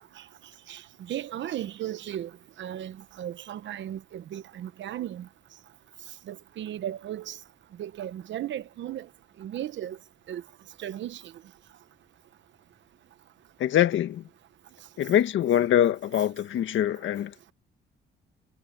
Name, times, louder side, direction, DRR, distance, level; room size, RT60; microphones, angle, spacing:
voice 1, 0.7-2.3 2.6-5.3 6.3-7.4 7.8-9.1 9.4-10.0 10.3-10.4 10.8-11.3, right 11 dB, 70° right, 1.0 m, -36 dB
voice 2, 13.6-14.2 15.0-17.5, left 11 dB, 75° left, 1.9 m, -24 dB
cardioid pair, 90°, 20 cm